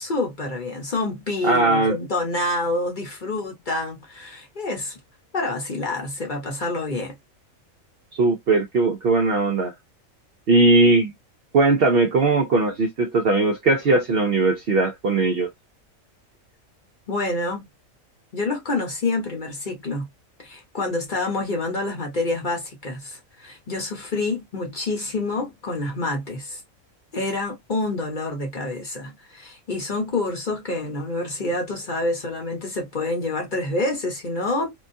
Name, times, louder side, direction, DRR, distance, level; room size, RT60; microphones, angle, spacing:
voice 1, 0.0-5.0 5.3-7.1 17.1-17.7 18.3-20.1 20.4-26.6 27.1-34.7, left 2 dB, 40° left, 1.0 m, -27 dB
voice 2, 1.4-2.0 8.1-9.7 10.5-11.1 11.5-15.5, right 3 dB, 60° right, 0.7 m, -19 dB
3.6 x 2.3 x 2.6 m
omnidirectional pair, 1.4 m